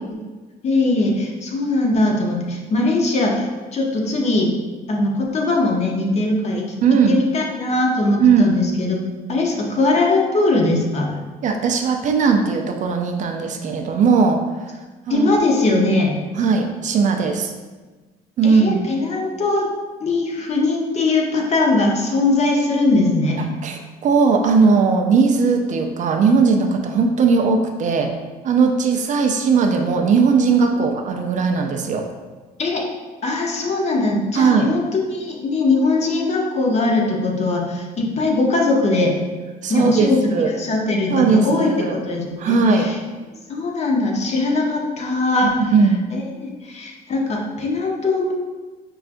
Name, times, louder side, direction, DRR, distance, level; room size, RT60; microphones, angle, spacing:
voice 1, 0.6-4.5 4.9-6.6 7.1-9.0 9.3-11.2 15.1-16.2 18.4-19.7 20.0-23.5 32.6-32.8 33.2-39.2 39.7-42.9 43.5-45.5 46.1-48.3, left 2 dB, 40° left, 0 dB, 0.7 m, -20 dB
voice 2, 6.8-7.2 8.2-8.5 11.4-14.8 15.1-15.3 16.4-17.5 18.4-18.9 23.4-28.1 28.4-32.1 34.3-34.7 39.6-40.5 41.1-42.0 42.4-42.9 45.4-46.0, right 5 dB, 45° right, 4 dB, 0.4 m, -18 dB
5.4 x 2.3 x 2.5 m, 1.3 s
cardioid pair, 110°, 17 cm